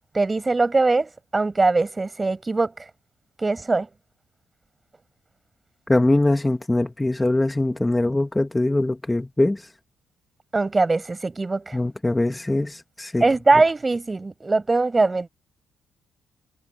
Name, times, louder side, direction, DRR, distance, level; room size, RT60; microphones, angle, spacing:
voice 1, 0.1-2.7 3.4-3.9 10.5-11.8 13.2-15.3, right 3 dB, 25° right, 7.0 m, -21 dB
voice 2, 5.9-9.6 11.7-13.2, left 2 dB, 15° left, 2.2 m, -22 dB
cardioid pair, 90°, 0 cm